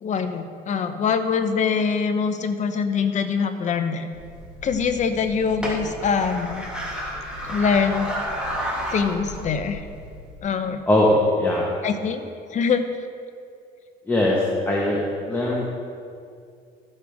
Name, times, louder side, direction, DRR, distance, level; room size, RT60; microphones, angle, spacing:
voice 1, 0.0-4.1 4.6-6.6 7.5-8.1 8.9-9.8 10.4-10.8 11.8-12.9, left 6 dB, 45° left, 8 dB, 0.8 m, -24 dB
sound 1, 4.1-10.4, equal, 5° right, 2.1 m, -32 dB
voice 2, 10.9-11.7 14.1-15.0 15.3-15.6, left 1 dB, 10° left, -4 dB, 1.5 m, -20 dB
14.0 x 6.5 x 3.6 m, 2.4 s
cardioid pair, 110°, 17 cm